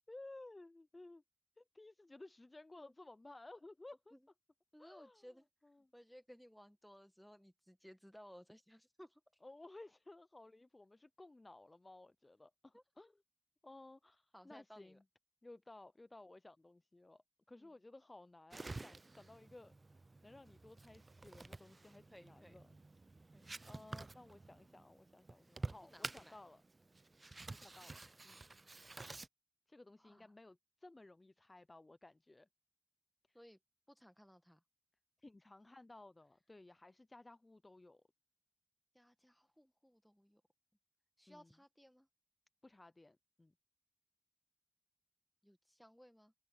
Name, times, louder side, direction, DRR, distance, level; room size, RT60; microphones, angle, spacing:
voice 1, 0.1-1.2 1.6-4.1 4.8-5.3 5.6-5.9 9.4-13.2 13.6-15.0 15.4-19.7 20.2-22.8 23.7-26.6 27.5-28.4 29.7-32.5 33.3-33.4 35.2-38.0 41.3-41.5 42.6-43.5, left 2 dB, 30° left, 0.4 m, -57 dB
voice 2, 4.7-5.4 5.9-9.2 12.7-12.8 14.3-15.0 17.6-17.7 22.1-22.6 23.3-23.5 25.8-26.4 30.0-30.3 33.3-33.6 33.9-34.6 38.9-40.4 41.2-42.1 45.4-46.3, equal, 5° left, 1.4 m, -60 dB
sound 1, 18.5-29.3, right 3 dB, 40° right, 0.4 m, -50 dB
open air
wide cardioid pair, 85°, 0 cm